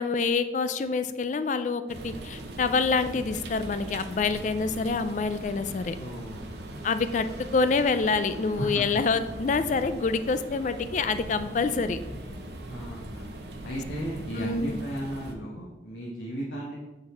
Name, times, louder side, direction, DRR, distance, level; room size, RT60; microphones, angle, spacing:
voice 1, 0.0-6.0 6.8-7.3 7.5-12.0 14.4-14.8, left 4 dB, 40° left, 11 dB, 0.3 m, -26 dB
sound 1, 1.9-15.3, right 1 dB, 65° right, 0.9 m, -40 dB
voice 2, 6.0-6.9 8.6-9.0 12.7-13.3 13.6-16.7, equal, 90° left, -5 dB, 1.2 m, -35 dB
8.7 x 4.1 x 4.3 m, 1.1 s
head